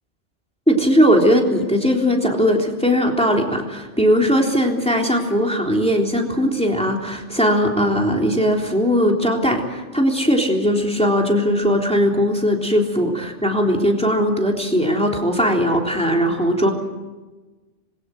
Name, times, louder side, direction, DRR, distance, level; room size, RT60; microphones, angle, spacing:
voice 1, 0.7-16.7, equal, 5° left, 0 dB, 3.6 m, -19 dB
26.5 x 22.5 x 7.9 m, 1.2 s
omnidirectional pair, 1.2 m